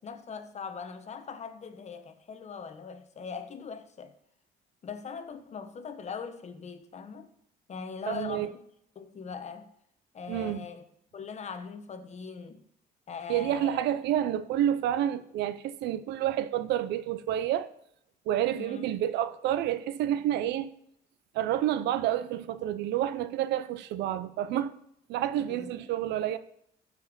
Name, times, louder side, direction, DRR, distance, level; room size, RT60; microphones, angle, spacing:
voice 1, 0.0-4.1 4.8-7.3 7.7-8.6 9.0-9.7 10.1-10.8 11.1-12.6 13.1-13.8 18.5-18.8 25.4-25.7, left 5 dB, 40° left, 1.0 m, -40 dB
voice 2, 8.1-8.5 10.3-10.6 13.3-17.7 18.3-20.7 21.3-24.7 25.1-26.4, right 11 dB, 90° right, 0.6 m, -29 dB
13.0 x 5.2 x 5.1 m
cardioid pair, 110°, 17 cm